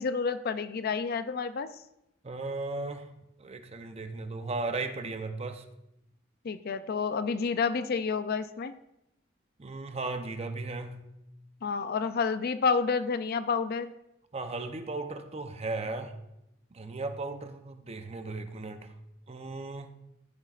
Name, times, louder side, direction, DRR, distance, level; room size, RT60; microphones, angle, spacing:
voice 1, 0.0-1.7 6.4-8.7 11.6-13.9, left 5 dB, 50° left, 12 dB, 0.4 m, -29 dB
voice 2, 2.2-3.1 3.4-5.6 9.6-11.1 14.3-16.1 16.7-18.9 19.3-19.9, right 3 dB, 30° right, 7 dB, 0.7 m, -36 dB
14.0 x 7.9 x 2.4 m, 0.85 s
head